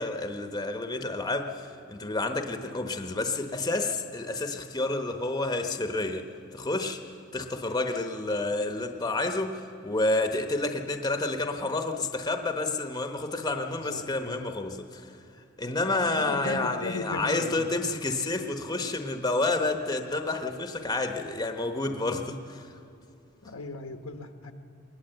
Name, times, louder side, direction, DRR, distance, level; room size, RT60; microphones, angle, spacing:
voice 1, 0.0-6.3 6.5-7.0 7.3-15.1 15.6-22.7, left 2 dB, 20° left, 5 dB, 0.9 m, -29 dB
voice 2, 13.4-14.4 16.1-17.7 23.4-24.5, left 2 dB, 80° left, 7 dB, 1.1 m, -37 dB
20.5 x 19.5 x 7.8 m, 2.6 s
head